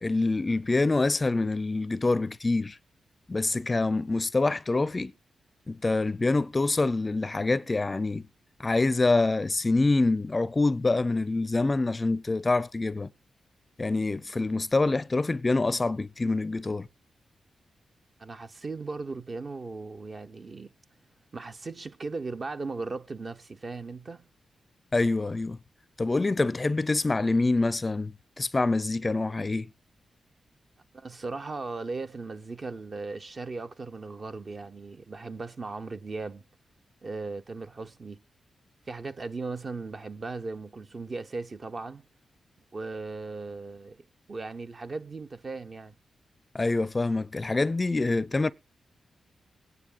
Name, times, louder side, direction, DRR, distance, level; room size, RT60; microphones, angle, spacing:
voice 1, 0.0-2.8 3.3-5.1 5.7-8.3 8.6-13.1 13.8-16.9 24.9-25.6 26.0-29.7 46.5-48.5, left 3 dB, 30° left, 0.5 m, -26 dB
voice 2, 18.2-20.7 21.3-24.3 30.9-36.4 37.0-38.2 38.9-42.0 42.7-46.0, right 3 dB, 50° right, 0.9 m, -37 dB
21.5 x 9.5 x 2.4 m
cardioid pair, 55°, 0 cm